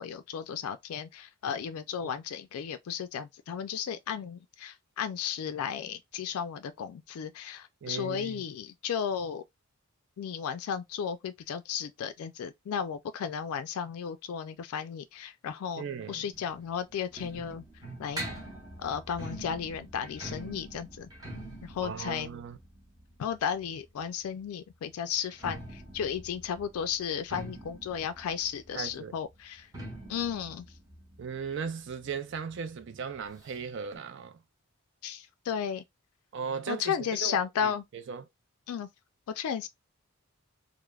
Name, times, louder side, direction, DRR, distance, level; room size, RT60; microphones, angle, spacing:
voice 1, 0.0-9.4 10.2-17.7 18.0-18.2 18.8-21.1 21.6-22.3 23.2-29.7 30.1-30.7 35.0-35.8 36.7-37.8 38.7-38.9 39.3-39.7, left 8 dB, 75° left, 0.3 m, -34 dB
voice 2, 7.8-8.4 15.8-16.2 21.8-22.6 28.7-29.1 31.2-34.4 36.3-36.9 37.2-38.2, right 6 dB, 55° right, 0.4 m, -37 dB
sound 1, 16.3-24.0 25.2-32.5 32.8-32.9 33.1-33.2 33.9-34.0, right 1 dB, 15° right, 0.8 m, -44 dB
3.1 x 2.0 x 2.3 m
head